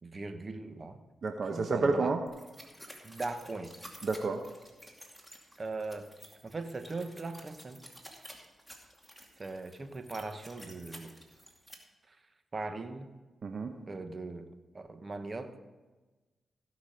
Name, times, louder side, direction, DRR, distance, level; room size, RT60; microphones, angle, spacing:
voice 1, 0.0-1.0 1.5-2.1 3.0-3.7 5.6-6.1 6.4-7.8 9.4-11.2 12.1-12.2 12.5-13.1 13.9-15.5, right 3 dB, 40° right, 8 dB, 1.1 m, -39 dB
voice 2, 1.2-2.2 4.0-4.4 13.4-13.7, right 3 dB, 60° right, 5 dB, 0.9 m, -30 dB
sound 1, 2.3-11.7, equal, 5° right, 2.5 m, -52 dB
16.0 x 6.2 x 5.1 m, 1.2 s
cardioid pair, 55°, 0 cm